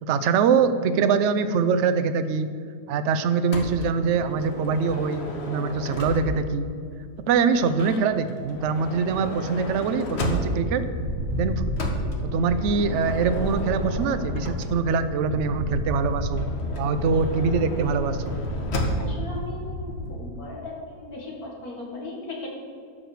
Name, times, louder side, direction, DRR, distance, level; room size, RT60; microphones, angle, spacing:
voice 1, 0.0-2.5 2.9-6.7 7.2-10.8 11.4-11.9 12.3-16.5 16.8-18.4, right 5 dB, 65° right, 11 dB, 0.7 m, -23 dB
Motor vehicle (road) / Sliding door, 3.5-6.6 7.6-10.8 11.8-15.1 16.3-19.3, left 1 dB, 45° left, 1.3 m, -33 dB
sound 1, 10.5-20.2, equal, 45° right, 2.0 m, -31 dB
voice 2, 19.0-22.5, left 2 dB, 60° left, -2 dB, 2.5 m, -37 dB
12.5 x 4.8 x 6.7 m, 2.3 s
omnidirectional pair, 1.8 m